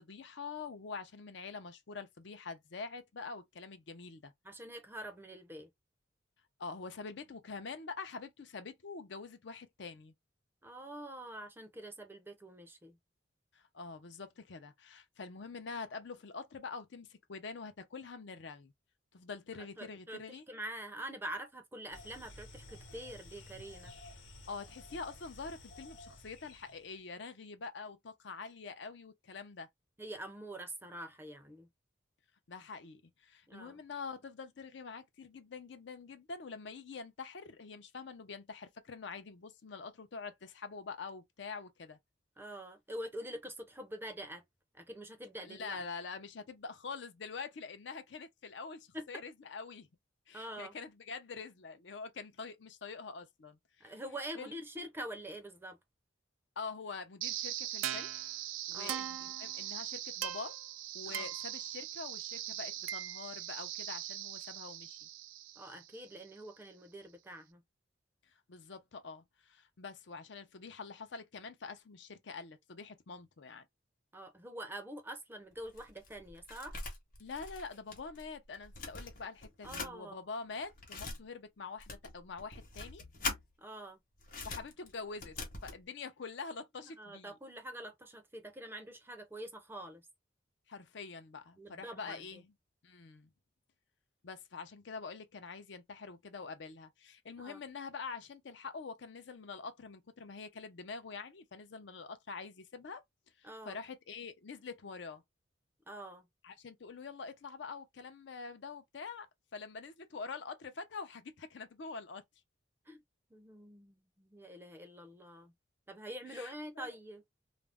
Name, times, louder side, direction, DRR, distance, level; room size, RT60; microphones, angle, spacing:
voice 1, 0.0-4.3 6.6-10.1 13.5-18.7 19.1-20.4 24.5-29.7 32.5-42.0 45.4-49.9 50.3-53.9 54.4-54.5 56.6-58.1 58.7-60.5 60.9-65.1 68.5-73.7 77.2-83.0 84.4-85.4 85.6-87.4 90.7-92.5 92.8-93.3 94.2-103.0 103.4-105.2 106.4-109.3 109.5-112.2 116.3-116.9, left 4 dB, 65° left, 0.5 m, -45 dB
voice 2, 4.4-5.7 10.6-13.0 19.8-23.9 30.0-31.7 33.5-33.8 42.4-44.4 44.7-45.8 48.9-49.0 50.3-50.7 53.8-55.8 58.7-59.0 61.1-61.3 65.6-67.6 74.1-76.8 79.6-80.2 83.6-84.0 87.0-90.0 91.6-92.4 97.4-97.6 103.4-103.8 105.9-106.2 112.9-113.0 113.3-115.5 115.9-117.2, right 1 dB, 10° right, 0.5 m, -45 dB
sound 1, 21.9-26.9, left 2 dB, 85° left, 1.0 m, -53 dB
sound 2, 57.2-66.2, right 12 dB, 80° right, 0.4 m, -40 dB
sound 3, 75.5-78.3 78.5-79.9 80.6-81.2 81.8-83.4 84.2-85.8, left 3 dB, 45° left, 0.9 m, -43 dB
2.5 x 2.0 x 3.4 m
head